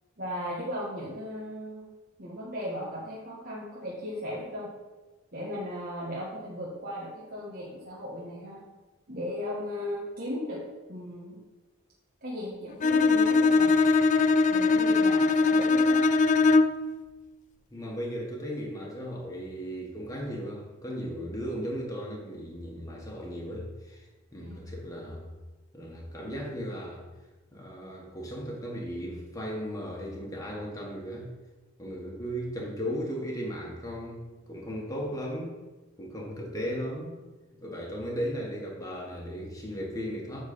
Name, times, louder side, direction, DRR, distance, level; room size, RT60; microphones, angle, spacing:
voice 1, 0.2-1.8 2.2-4.7 5.3-8.6 9.1-10.6 10.9-11.4 12.2-13.8 14.5-16.0 24.4-24.6, left 1 dB, 45° right, -6 dB, 1.6 m, -36 dB
Bowed string instrument, 12.8-16.9, left 4 dB, 35° left, 0.3 m, -21 dB
voice 2, 17.7-24.1 24.3-25.3 25.7-27.1 27.5-31.3 31.8-35.5 36.0-37.2 37.6-40.4, equal, 15° left, -2 dB, 1.6 m, -36 dB
9.4 x 4.1 x 6.8 m, 1.2 s
head